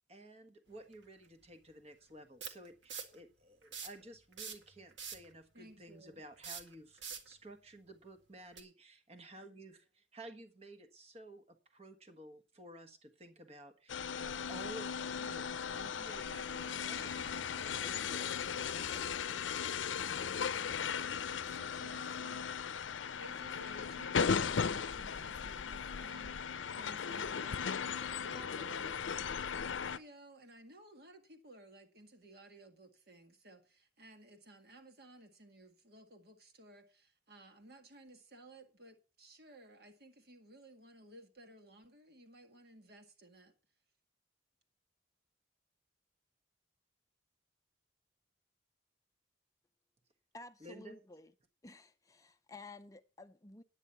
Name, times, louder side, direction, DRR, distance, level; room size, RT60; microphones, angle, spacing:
voice 1, 0.0-17.3 17.8-18.2 50.6-51.0, right 1 dB, 35° right, 1.3 m, -53 dB
sound 1, 0.9-1.0 2.4-3.2 3.6-4.0 4.3-5.3 6.4-7.3 8.5-8.6, right 6 dB, 80° right, 1.9 m, -44 dB
voice 2, 5.5-6.2 15.1-22.5 22.9-28.9 29.5-43.5, right 1 dB, 55° right, 1.9 m, -57 dB
sound 2, 13.9-30.0, left 6 dB, 90° left, 0.6 m, -37 dB
voice 3, 50.3-51.3 51.6-53.6, left 2 dB, 15° left, 0.5 m, -53 dB
10.0 x 9.2 x 5.6 m
head